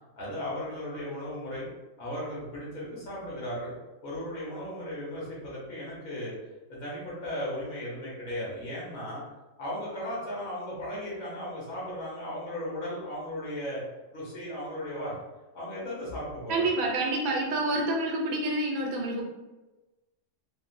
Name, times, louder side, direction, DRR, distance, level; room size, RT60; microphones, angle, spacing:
voice 1, 0.2-1.7 2.0-3.7 4.0-6.3 6.7-9.2 9.6-13.8 14.1-15.1 15.5-16.7, left 1 dB, 80° left, -6 dB, 1.5 m, -36 dB
voice 2, 16.5-19.2, right 2 dB, 85° right, 0 dB, 1.1 m, -28 dB
3.4 x 2.5 x 2.5 m, 1.1 s
omnidirectional pair, 1.4 m